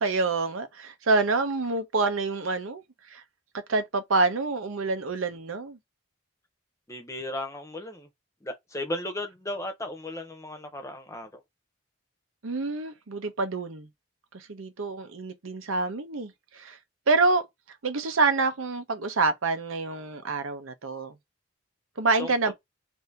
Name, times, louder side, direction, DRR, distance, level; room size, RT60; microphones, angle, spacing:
voice 1, 0.0-2.8 3.1-3.2 3.7-5.8 12.4-13.9 14.3-16.8 17.1-17.5 17.8-21.1 22.0-22.5, right 3 dB, 75° right, 0.7 m, -27 dB
voice 2, 6.9-8.1 8.4-11.4 22.2-22.5, left 1 dB, 15° left, 0.7 m, -35 dB
2.7 x 2.7 x 3.3 m
head